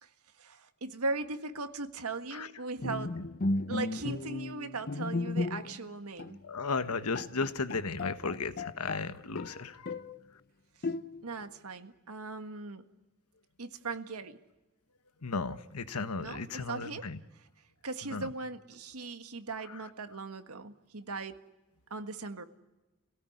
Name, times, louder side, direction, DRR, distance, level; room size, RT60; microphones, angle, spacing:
voice 1, 0.0-3.2 3.7-6.4 10.8-10.9 11.2-12.9 13.6-14.4 16.2-17.0 17.8-21.4 21.9-22.4, right 3 dB, 80° right, 8 dB, 1.6 m, -39 dB
Bowed string instrument, 2.8-5.9 6.2-6.4 6.8-6.9 7.1-9.1 9.4-10.2 10.8-11.4, left 2 dB, 45° left, 0.7 m, -35 dB
voice 2, 6.4-10.0 15.2-17.2 18.0-18.3 19.6-19.8, left 4 dB, 85° left, 11 dB, 1.3 m, -35 dB
27.5 x 17.5 x 9.4 m, 1.1 s
head